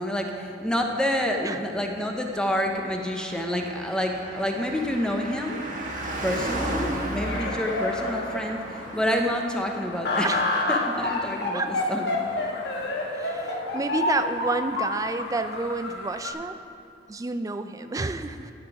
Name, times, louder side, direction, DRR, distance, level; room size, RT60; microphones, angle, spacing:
voice 1, 0.0-5.6 6.2-10.3 10.7-11.6 11.9-12.1, left 1 dB, 5° left, 2 dB, 0.7 m, -28 dB
Car passing by, 2.8-14.6 14.9-15.0, right 1 dB, 45° right, 1.4 m, -36 dB
voice 2, 6.7-7.1 10.2-10.4 11.5-11.8 13.1-16.6 17.1-18.5, right 3 dB, 20° right, 10 dB, 0.3 m, -30 dB
sound 1, 7.2-16.3, left 2 dB, 60° left, 1.3 m, -29 dB
14.0 x 5.8 x 4.8 m, 2.4 s
head